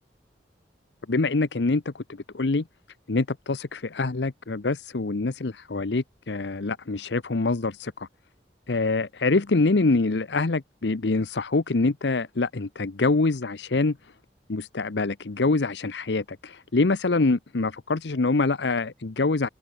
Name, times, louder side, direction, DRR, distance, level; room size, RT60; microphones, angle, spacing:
voice 1, 1.1-2.6 3.1-8.1 8.7-14.0 14.5-19.5, left 3 dB, 80° left, 0.8 m, -25 dB
open air
head